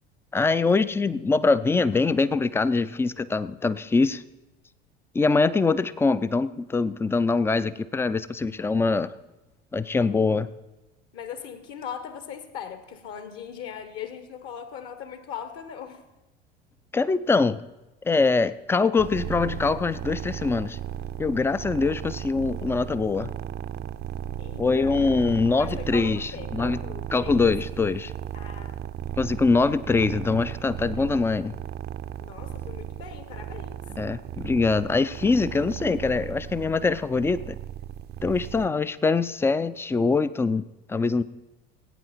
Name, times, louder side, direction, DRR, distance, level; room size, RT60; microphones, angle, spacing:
voice 1, 0.3-4.2 5.1-9.1 9.7-10.5 16.9-17.6 18.1-20.8 21.2-23.3 24.6-26.8 27.1-28.1 29.2-31.5 34.0-37.5 38.2-40.6 40.9-41.2, left 4 dB, 10° left, 16 dB, 0.4 m, -23 dB
voice 2, 11.1-16.0 24.4-25.0 25.5-27.5 28.3-28.8 32.2-33.8, left 8 dB, 50° left, 9 dB, 1.6 m, -40 dB
Cat purring, 19.0-38.7, right 11 dB, 35° right, 0.6 m, -36 dB
19.0 x 9.1 x 4.4 m, 1.0 s
figure-of-eight pair, 70°, 30 cm